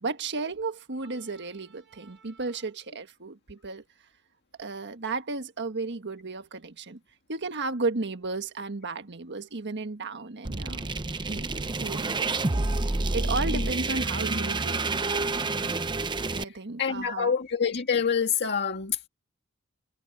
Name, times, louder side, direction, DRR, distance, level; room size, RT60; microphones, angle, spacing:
voice 1, 0.0-3.8 4.6-7.0 7.3-10.9 11.2-12.7 13.1-15.3 16.3-17.3, right 3 dB, 55° right, 1.5 m, -34 dB
sound 1, 10.4-16.4, right 3 dB, 20° right, 0.7 m, -28 dB
voice 2, 16.8-19.1, left 6 dB, 50° left, 1.9 m, -26 dB
head